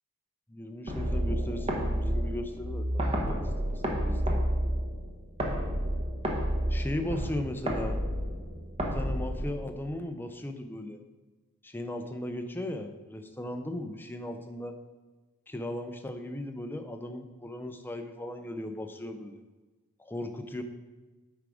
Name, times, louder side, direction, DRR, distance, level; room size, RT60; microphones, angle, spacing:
voice 1, 0.5-4.4 6.7-8.0 8.8-11.0 11.6-14.8 15.5-19.4 20.0-20.6, left 1 dB, 10° left, 6 dB, 0.5 m, -37 dB
sound 1, 0.9-9.9, equal, 25° right, 1.0 m, -30 dB
9.4 x 3.6 x 4.9 m, 1.2 s
head